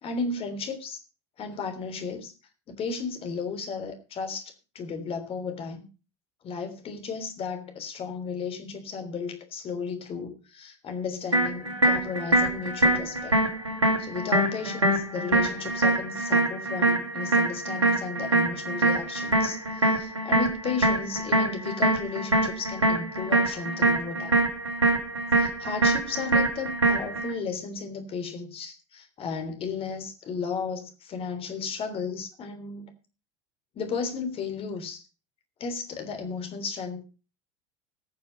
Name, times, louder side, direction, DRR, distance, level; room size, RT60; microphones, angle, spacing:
voice 1, 0.0-1.0 1.4-2.3 2.7-5.8 6.4-13.3 14.0-24.4 25.4-33.0 33.7-35.0 35.6-37.0, left 5 dB, 40° left, 3.4 m, -34 dB
sound 1, 11.3-27.3, right 2 dB, 90° right, 2.6 m, -24 dB
18.5 x 6.9 x 5.4 m
figure-of-eight pair, 75°, 15 cm